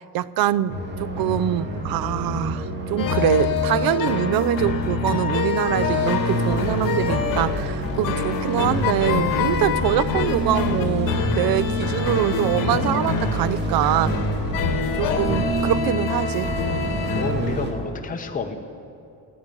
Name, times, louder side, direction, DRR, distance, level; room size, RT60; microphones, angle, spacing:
voice 1, 0.0-14.1 15.0-16.5, right 13 dB, 65° right, 18 dB, 0.5 m, -24 dB
sound 1, 0.7-17.7, equal, 25° right, 2.3 m, -28 dB
sound 2, 3.0-17.3, left 5 dB, 55° left, 1.5 m, -26 dB
voice 2, 15.1-15.6 17.1-18.5, left 5 dB, 20° left, 3 dB, 1.0 m, -30 dB
16.5 x 9.0 x 7.7 m, 2.6 s
cardioid pair, 125°, 39 cm